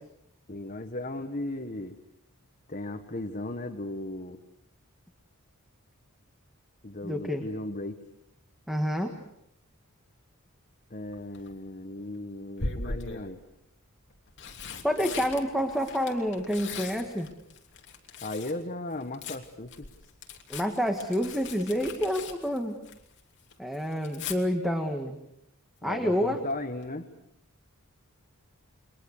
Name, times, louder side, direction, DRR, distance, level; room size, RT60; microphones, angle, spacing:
voice 1, 0.5-2.0 2.7-4.4 6.8-8.0 10.9-13.4 18.2-20.1 25.8-27.1, left 2 dB, 35° left, 6 dB, 1.5 m, -36 dB
voice 2, 7.0-7.4 8.7-9.2 14.8-17.3 20.5-22.8 23.6-25.2 25.8-26.4, equal, ahead, 4 dB, 1.7 m, -28 dB
Tearing, 11.1-11.5 12.6-13.3 14.1-18.6 18.9-23.2 23.5-24.4 26.2-26.5 26.8-26.9, left 4 dB, 55° left, 3.0 m, -40 dB
30.0 x 23.0 x 6.7 m, 0.79 s
head